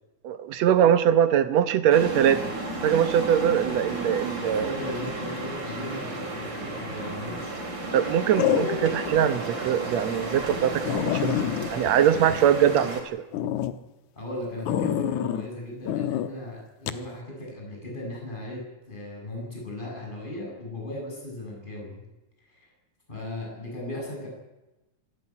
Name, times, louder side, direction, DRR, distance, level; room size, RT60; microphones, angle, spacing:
voice 1, 0.2-2.5 2.8-4.7 7.9-11.4 11.7-13.2, right 9 dB, 70° right, 12 dB, 2.1 m, -22 dB
sound 1, 1.9-13.0, right 2 dB, 40° right, 4.5 m, -33 dB
voice 2, 4.4-7.6 14.2-22.0 22.6-22.7 23.1-24.3, left 1 dB, 15° left, -2 dB, 7.4 m, -37 dB
sound 2, 6.8-7.2 8.4-9.1 9.6-9.7 10.2-10.3 10.5-10.6 10.9-12.9 13.3-13.7 14.7-15.5 15.9-16.3 16.9-17.0, left 11 dB, 85° left, 2.4 m, -27 dB
26.0 x 12.0 x 9.8 m, 1.0 s
omnidirectional pair, 3.3 m